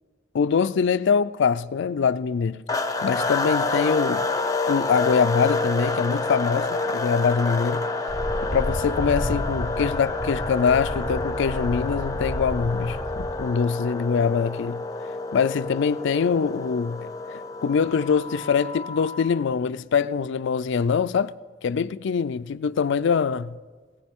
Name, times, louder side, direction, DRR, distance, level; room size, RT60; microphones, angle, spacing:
voice 1, 0.3-2.6 3.0-4.3 4.7-7.9 8.4-14.8 15.3-21.3 21.6-23.6, left 6 dB, 65° left, 0.4 m, -24 dB
sound 1, 2.7-19.4, left 3 dB, 15° left, 0.6 m, -28 dB
sound 2, 8.1-13.4, equal, 40° right, 2.0 m, -31 dB
19.0 x 16.0 x 3.6 m
head